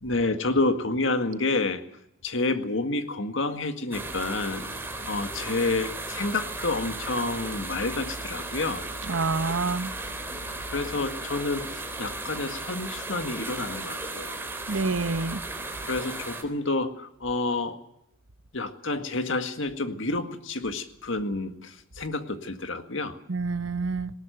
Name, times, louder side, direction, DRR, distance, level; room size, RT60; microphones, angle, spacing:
voice 1, 0.0-1.8 2.2-4.7 5.1-8.9 10.7-14.4 15.9-17.8 18.5-23.2, left 2 dB, 65° left, 8 dB, 1.9 m, -29 dB
sound 1, 3.9-16.4, right 2 dB, 10° right, 3.7 m, -35 dB
voice 2, 9.1-9.9 14.7-15.4 23.3-24.1, right 3 dB, 75° right, 12 dB, 1.1 m, -27 dB
20.0 x 18.0 x 9.3 m, 0.78 s
head